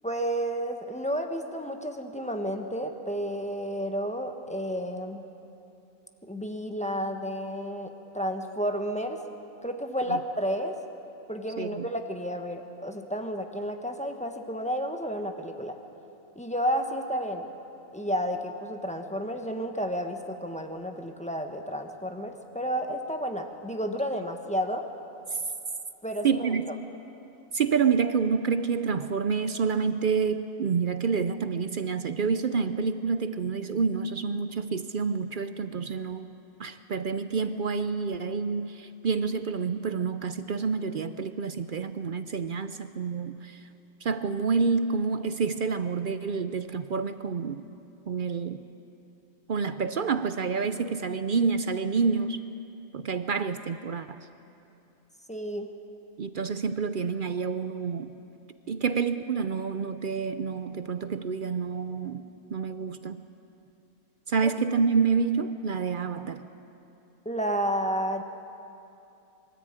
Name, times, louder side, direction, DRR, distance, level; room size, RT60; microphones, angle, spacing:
voice 1, 0.0-5.2 6.2-9.2 9.6-10.8 11.3-15.8 16.4-17.5 17.9-24.8 26.0-26.5 55.3-55.7 67.2-68.2, equal, 5° left, 4 dB, 1.1 m, -31 dB
voice 2, 26.2-26.7 27.5-36.3 36.6-43.7 44.0-47.7 48.1-48.6 49.5-52.4 52.9-54.3 56.2-58.1 58.7-62.2 62.5-63.2 64.3-66.4, right 5 dB, 55° right, 11 dB, 0.6 m, -28 dB
24.0 x 13.5 x 8.8 m, 2.8 s
omnidirectional pair, 1.4 m